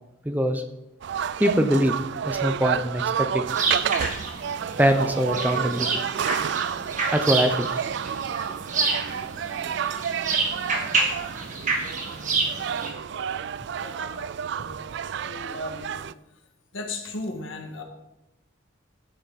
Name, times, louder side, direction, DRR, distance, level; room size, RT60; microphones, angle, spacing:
voice 1, 0.2-0.6 1.4-1.9 2.2-3.0 3.3-3.4 4.8-6.0 7.1-7.7, equal, 10° right, 6 dB, 0.7 m, -22 dB
sound 1, 1.0-16.1, right 8 dB, 60° right, 0.3 m, -30 dB
sound 2, 3.5-12.9, right 3 dB, 40° right, 1.9 m, -28 dB
voice 2, 13.7-14.8 15.1-16.1 16.7-17.8, left 2 dB, 80° left, 3 dB, 1.9 m, -36 dB
12.5 x 8.3 x 4.2 m, 0.91 s
head